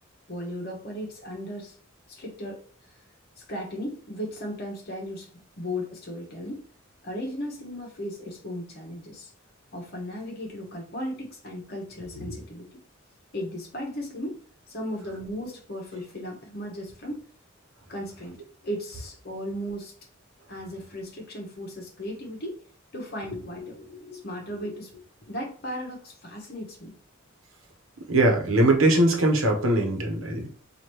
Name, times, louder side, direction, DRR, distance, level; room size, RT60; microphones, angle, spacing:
voice 1, 0.3-1.8 2.1-2.6 2.9-3.0 3.5-5.3 5.6-6.6 7.0-9.3 9.7-12.8 13.3-14.4 14.7-17.2 17.9-19.9 20.5-22.6 22.9-26.9, equal, 50° left, 0 dB, 1.0 m, -36 dB
voice 2, 28.1-30.5, right 1 dB, 80° right, 2 dB, 1.0 m, -21 dB
4.9 x 2.5 x 3.0 m, 0.44 s
head